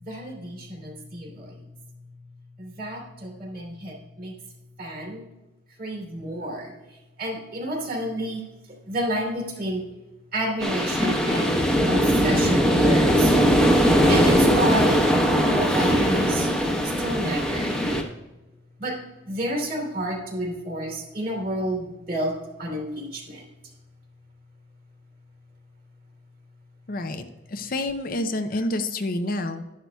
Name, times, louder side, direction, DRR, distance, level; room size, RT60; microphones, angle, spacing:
voice 1, 0.0-1.6 2.6-4.3 4.8-5.2 5.8-6.7 7.2-8.4 8.9-9.8 10.3-13.4 13.7-15.0 15.4-16.5 16.8-17.7 18.8-19.0 19.2-23.4, right 1 dB, 50° right, 0 dB, 2.8 m, -30 dB
sound 1, 10.6-18.0, equal, 5° left, 1.0 m, -20 dB
voice 2, 26.9-29.6, left 2 dB, 45° left, 8 dB, 0.6 m, -28 dB
12.0 x 10.5 x 2.3 m, 1.0 s
head